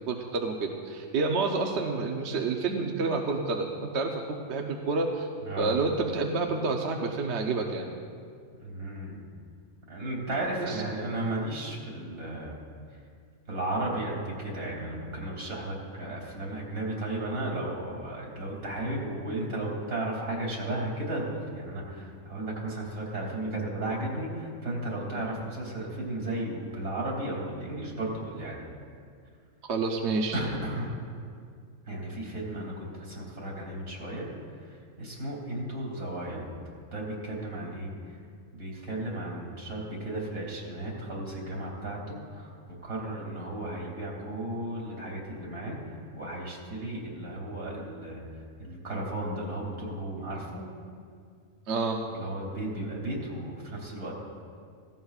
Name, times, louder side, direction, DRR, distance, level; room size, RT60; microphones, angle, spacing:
voice 1, 0.1-5.3 5.6-7.9 10.6-10.8 29.7-30.4 51.7-52.0, right 3 dB, 55° right, 2 dB, 1.0 m, -29 dB
voice 2, 5.4-5.8 8.6-9.2 9.9-12.5 13.5-28.7 30.3-30.9 31.9-34.3 34.6-36.6 36.9-37.9 38.5-42.5 42.8-48.2 48.6-50.6 52.1-54.1, right 1 dB, 70° right, -3 dB, 3.1 m, -34 dB
16.5 x 16.0 x 2.4 m, 2.2 s
omnidirectional pair, 1.5 m